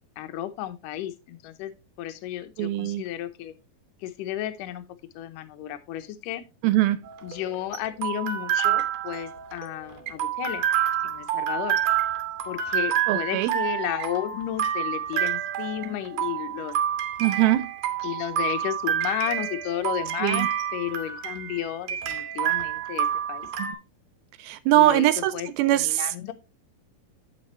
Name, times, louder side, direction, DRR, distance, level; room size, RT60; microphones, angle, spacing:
voice 1, 0.2-3.5 4.0-4.8 5.1-6.4 7.2-10.6 11.0-11.8 12.4-16.7 18.0-23.5 24.7-26.3, left 12 dB, 75° left, 2.2 m, -33 dB
voice 2, 2.6-3.0 6.6-7.0 13.1-13.5 17.2-17.7 20.2-20.5 23.6-23.8 24.4-26.1, right 15 dB, 90° right, 2.5 m, -22 dB
sound 1, 7.1-23.7, right 10 dB, 70° right, 1.6 m, -28 dB
8.9 x 7.5 x 3.0 m
omnidirectional pair, 4.2 m